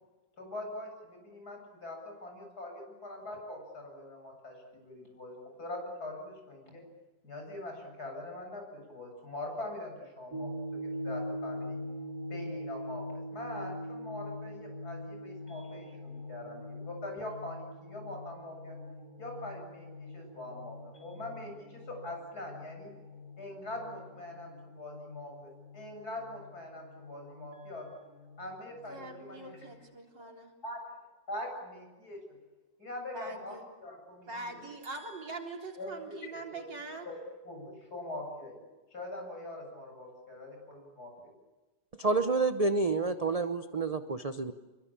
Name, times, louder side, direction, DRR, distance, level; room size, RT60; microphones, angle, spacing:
voice 1, 0.4-6.8 7.2-11.8 12.3-18.8 19.2-22.9 23.4-27.9 28.4-29.6 30.6-31.0 31.3-32.2 32.8-34.6 35.8-36.7 37.0-37.2 37.4-38.6 38.9-41.3, left 1 dB, 60° left, 3 dB, 8.5 m, -43 dB
sound 1, 10.3-29.7, left 1 dB, 60° right, 3.9 m, -43 dB
voice 2, 28.8-30.5 33.1-33.6 34.3-37.1, right 3 dB, 90° right, 1 dB, 4.5 m, -43 dB
voice 3, 42.0-44.5, right 3 dB, 30° right, 9 dB, 0.7 m, -29 dB
27.5 x 23.5 x 8.8 m, 1.2 s
omnidirectional pair, 1.9 m